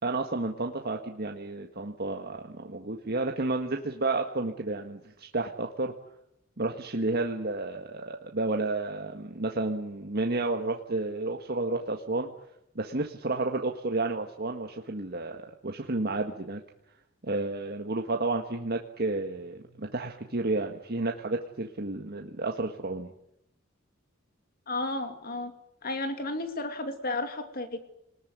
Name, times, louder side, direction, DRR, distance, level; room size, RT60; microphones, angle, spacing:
voice 1, 0.0-5.9 6.6-12.3 12.7-16.6 17.2-23.1, right 2 dB, 50° right, 3 dB, 1.7 m, -31 dB
voice 2, 24.7-25.5 25.8-27.8, left 2 dB, 45° left, 8 dB, 2.5 m, -33 dB
27.0 x 20.5 x 9.5 m, 0.82 s
head